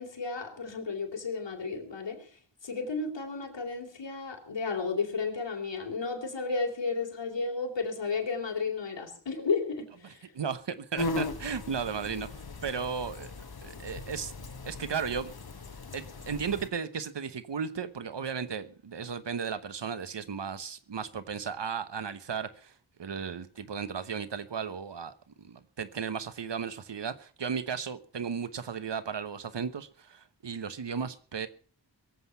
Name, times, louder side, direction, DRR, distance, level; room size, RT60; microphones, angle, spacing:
voice 1, 0.0-2.3 2.6-10.2, left 4 dB, 80° left, 3.5 m, -33 dB
voice 2, 10.3-12.3 12.6-13.3 13.6-14.3 14.6-15.3 15.9-22.7 23.0-31.5, right 6 dB, 70° right, 1.1 m, -35 dB
sound 1, 11.0-16.7, left 3 dB, 55° left, 1.6 m, -38 dB
22.5 x 8.0 x 5.8 m
wide cardioid pair, 75°, 43 cm